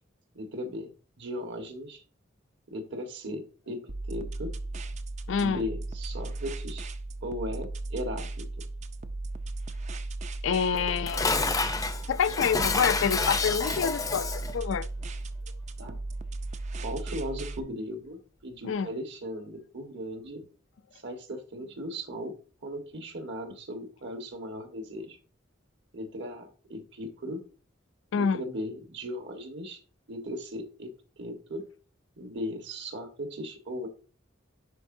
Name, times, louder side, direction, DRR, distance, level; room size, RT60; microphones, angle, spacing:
voice 1, 0.3-0.9 1.2-2.0 2.7-4.5 5.4-6.9 7.2-8.4 15.8-16.0 16.8-20.4 21.0-22.3 22.6-25.2 25.9-27.4 28.1-29.8 30.1-31.6 32.2-33.9, equal, 60° right, 1.4 m, -37 dB
sound 1, 3.9-17.6, right 2 dB, 35° right, 0.5 m, -36 dB
voice 2, 5.3-5.6 10.4-11.4 12.1-14.9 18.6-18.9 28.1-28.4, left 6 dB, 70° left, 0.4 m, -27 dB
Dishes pots and pans, 10.7-14.6, left 4 dB, 20° left, 0.6 m, -29 dB
11.0 x 4.5 x 2.6 m
head